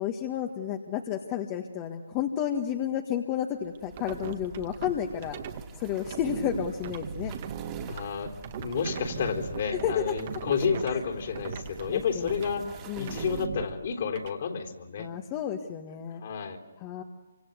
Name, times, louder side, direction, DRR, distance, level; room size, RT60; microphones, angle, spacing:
voice 1, 0.0-5.4 5.8-7.3 9.8-10.1 11.9-12.3 12.9-13.2 15.0-16.2 16.8-17.0, left 9 dB, 25° left, 4 dB, 1.7 m, -31 dB
sound 1, 3.6-13.5, right 5 dB, 20° right, 2.5 m, -48 dB
sound 2, 3.7-5.6 6.1-11.0 11.3-11.9 12.3-12.5 13.0-14.3, right 8 dB, 40° right, 1.9 m, -38 dB
voice 2, 7.9-15.1 16.1-16.6, left 6 dB, 50° left, 3 dB, 3.7 m, -31 dB
27.5 x 25.5 x 8.2 m, 1.2 s
figure-of-eight pair, 145°, 0 cm